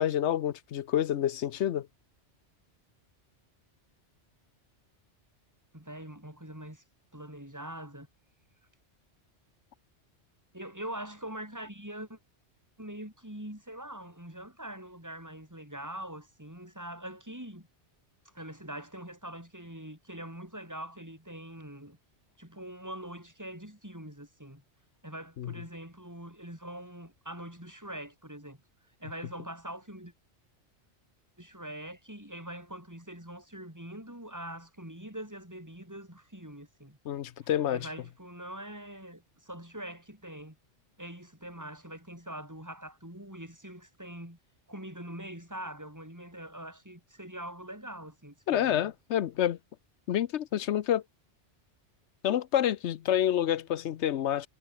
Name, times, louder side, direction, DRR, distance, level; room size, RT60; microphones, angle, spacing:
voice 1, 0.0-1.9 25.4-25.5 37.1-37.9 48.5-49.6 50.1-51.0 52.2-54.5, left 11 dB, 80° left, 1.0 m, -28 dB
voice 2, 5.7-6.8 7.1-8.1 10.5-12.2 12.8-17.7 18.3-22.0 22.4-24.6 25.0-28.6 29.0-30.1 31.4-37.0 37.4-40.6 41.0-44.4 44.7-48.9, right 1 dB, 15° right, 6.6 m, -43 dB
omnidirectional pair, 1.2 m